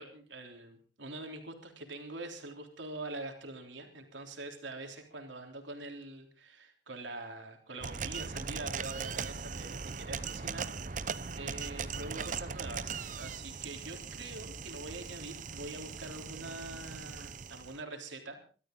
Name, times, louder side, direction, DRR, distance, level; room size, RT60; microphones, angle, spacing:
voice 1, 0.0-11.1 11.4-18.4, right 2 dB, 90° right, 4 dB, 3.6 m, -44 dB
sound 1, 7.8-17.8, right 5 dB, 45° right, 0.8 m, -39 dB
23.5 x 13.5 x 3.9 m, 0.39 s
head